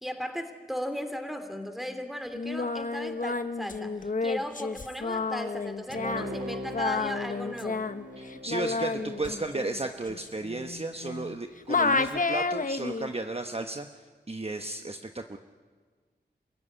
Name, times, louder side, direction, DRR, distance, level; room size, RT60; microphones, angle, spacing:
voice 1, 0.0-7.9, equal, ahead, 7 dB, 2.8 m, -36 dB
Singing, 2.3-11.4 11.7-13.1, left 3 dB, 50° left, 1.1 m, -31 dB
Bowed string instrument, 5.9-10.5 10.9-11.0, equal, 70° right, 2.6 m, -41 dB
voice 2, 8.2-13.9 14.3-15.4, right 2 dB, 35° right, 6 dB, 1.1 m, -34 dB
27.0 x 15.5 x 9.9 m, 1.5 s
wide cardioid pair, 65°, 18 cm